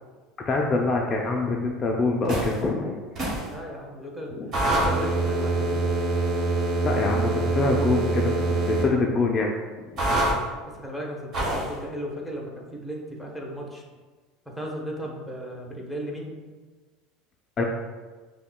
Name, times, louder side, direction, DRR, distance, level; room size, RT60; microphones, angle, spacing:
voice 1, 0.5-3.0 4.4-4.5 6.8-8.3 8.7-9.5 9.8-9.9 17.6-17.7, left 3 dB, 35° left, 0 dB, 0.4 m, -25 dB
sound 1, 2.3-2.6 3.2-3.5 4.5-8.9 10.0-10.4 11.3-11.7, right 2 dB, 45° right, 1.3 m, -25 dB
voice 2, 3.5-4.4 4.7-6.0 10.7-13.8 14.5-16.3, equal, ahead, -1 dB, 0.8 m, -35 dB
5.5 x 2.1 x 2.2 m, 1.4 s
supercardioid pair, 100°, 0 cm